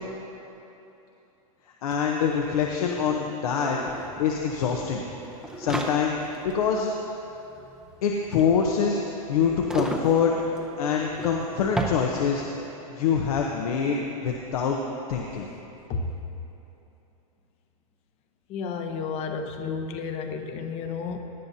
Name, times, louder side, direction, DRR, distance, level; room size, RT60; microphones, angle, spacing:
voice 1, 1.8-3.8 4.2-5.0 5.6-6.9 8.0-9.0 9.3-10.3 10.8-14.8 15.1-15.5, left 6 dB, 75° left, 0 dB, 0.9 m, -25 dB
sound 1, 1.9-2.0 2.2-12.7, right 1 dB, 5° right, 0.6 m, -36 dB
voice 2, 18.5-21.2, left 5 dB, 30° left, 5 dB, 0.8 m, -31 dB
17.5 x 10.5 x 2.8 m, 3.0 s
supercardioid pair, 145°, 19 cm